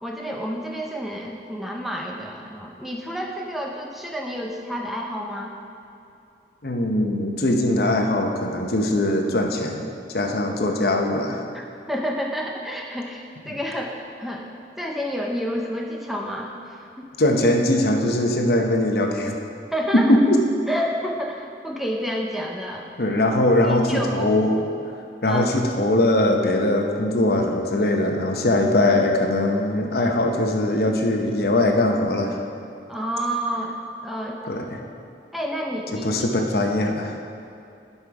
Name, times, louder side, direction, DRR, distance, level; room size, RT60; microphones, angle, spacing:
voice 1, 0.0-5.5 11.9-14.5 14.8-17.1 19.7-20.2 20.7-22.9 23.6-24.3 25.3-25.5 32.9-33.8 34.0-34.4 35.3-36.1, equal, ahead, -1 dB, 0.6 m, -29 dB
voice 2, 6.6-9.9 10.1-11.4 17.2-19.4 19.9-20.4 23.0-24.6 25.2-32.3 34.4-34.8 35.9-37.2, left 1 dB, 60° left, 2 dB, 0.9 m, -21 dB
11.5 x 5.6 x 4.7 m, 2.6 s
head